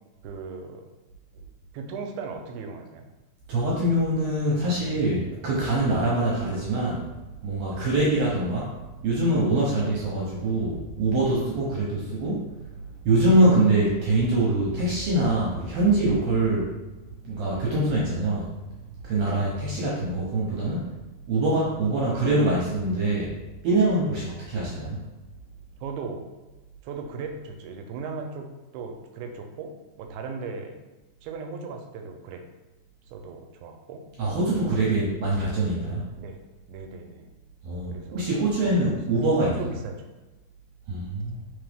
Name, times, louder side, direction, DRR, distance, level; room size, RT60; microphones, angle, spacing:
voice 1, 0.2-0.9 1.7-3.1 4.5-5.0 5.3-5.4 7.8-8.0 9.6-9.9 16.4-16.5 19.2-19.5 25.8-26.3 26.8-28.5 28.7-30.8 31.2-32.4 33.1-34.1 34.9-35.1 36.2-36.4 36.7-37.3 37.9-39.0 39.4-40.0, right 4 dB, 85° right, 4 dB, 2.0 m, -38 dB
voice 2, 3.5-7.1 7.4-8.7 9.0-12.5 13.0-16.7 17.2-18.5 19.0-20.9 21.3-23.3 23.6-25.0 34.2-36.0 37.6-39.6 40.9-41.4, right 2 dB, 70° right, -5 dB, 1.8 m, -24 dB
4.0 x 3.9 x 3.4 m, 1.1 s
omnidirectional pair, 3.4 m